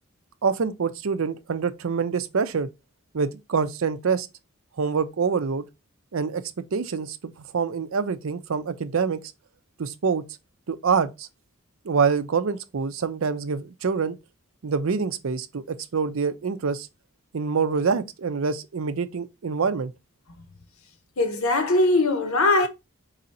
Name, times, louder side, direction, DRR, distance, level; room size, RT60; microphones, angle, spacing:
voice 1, 0.4-2.7 3.1-4.3 4.8-5.6 6.1-6.4 6.7-9.2 9.8-10.2 10.7-11.3 11.8-14.1 14.6-16.9 17.3-19.9, right 5 dB, 65° right, 0.5 m, -26 dB
voice 2, 21.2-22.7, left 2 dB, 75° left, 0.9 m, -20 dB
4.8 x 2.6 x 4.2 m
head